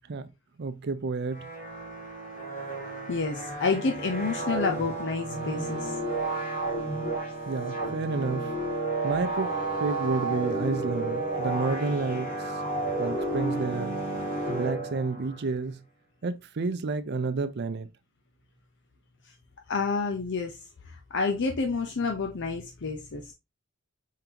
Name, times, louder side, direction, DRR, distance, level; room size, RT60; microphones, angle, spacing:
voice 1, 0.6-1.5 7.5-8.5 9.0-9.5 9.8-12.3 13.0-14.0 14.5-15.8 16.2-17.9, right 3 dB, 50° right, 0.5 m, -30 dB
sound 1, 1.3-15.4, right 2 dB, 40° left, 2.0 m, -32 dB
voice 2, 3.1-6.0 19.7-23.3, left 4 dB, 60° left, 0.7 m, -29 dB
4.6 x 3.8 x 2.8 m
head